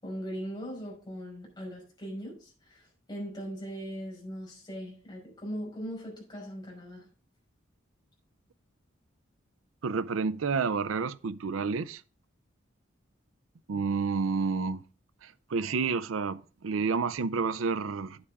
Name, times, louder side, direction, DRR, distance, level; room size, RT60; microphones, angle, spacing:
voice 1, 0.0-2.8 3.1-7.0, equal, 20° left, 5.3 m, -39 dB
voice 2, 9.8-12.0 13.7-14.8 15.5-18.2, right 5 dB, 85° right, 0.5 m, -29 dB
9.9 x 8.1 x 3.5 m
head